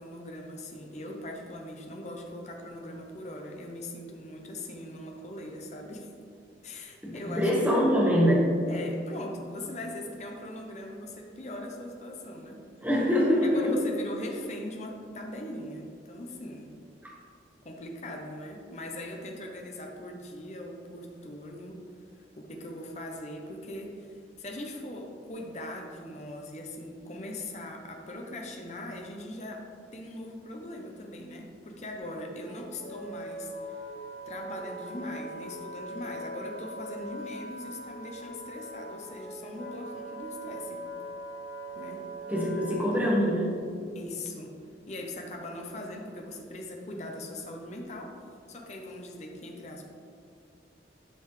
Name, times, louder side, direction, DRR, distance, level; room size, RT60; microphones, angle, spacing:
voice 1, 0.0-6.1 6.6-7.8 8.7-12.6 13.4-16.7 17.6-21.8 22.1-33.8 34.3-40.8 41.7-42.0 42.8-42.9 43.9-44.5 44.9-48.2 48.5-49.8, left 1 dB, 35° left, 1 dB, 0.8 m, -40 dB
voice 2, 7.0-8.5 12.8-13.7 17.0-17.1 42.3-43.4, equal, 10° right, -5 dB, 1.4 m, -24 dB
Wind instrument woodwind instrument, 32.4-43.2, equal, 70° left, 1.8 m, -41 dB
10.0 x 5.3 x 3.3 m, 2.4 s
head